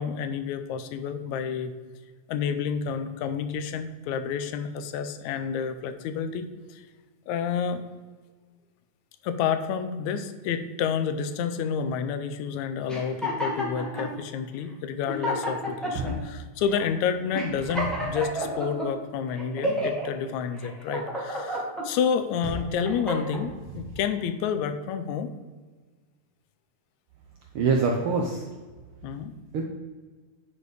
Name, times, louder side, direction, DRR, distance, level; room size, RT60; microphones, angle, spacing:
voice 1, 0.0-1.7 2.3-6.8 7.3-7.8 9.2-25.3 29.0-29.3, left 7 dB, 80° left, 10 dB, 2.0 m, -29 dB
sound 1, 12.9-14.1 14.7-14.8 15.1-16.1 16.7-16.9 17.3-18.9 19.4-20.1 20.6-21.9 22.4-23.4, equal, ahead, 0.9 m, -30 dB
sound 2, 15.9-16.3 17.2-18.3 22.4-22.8 23.4-24.1, right 1 dB, 55° right, 1.7 m, -37 dB
voice 2, 27.5-28.4 29.5-29.6, right 4 dB, 75° right, 0 dB, 1.2 m, -24 dB
9.8 x 4.3 x 5.0 m, 1.4 s
omnidirectional pair, 3.3 m